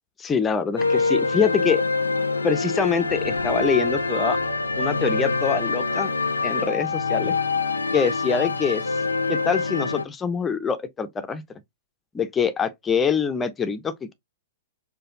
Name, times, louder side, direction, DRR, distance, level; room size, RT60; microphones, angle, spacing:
voice 1, 0.2-1.8 2.4-4.4 4.8-6.1 6.4-7.3 7.9-8.9 9.3-11.4 12.1-14.1, left 6 dB, 15° left, 0.5 m, -24 dB
sound 1, 0.8-10.0, left 4 dB, 80° left, 0.5 m, -25 dB
4.8 x 2.2 x 2.6 m
figure-of-eight pair, 105°, 0 cm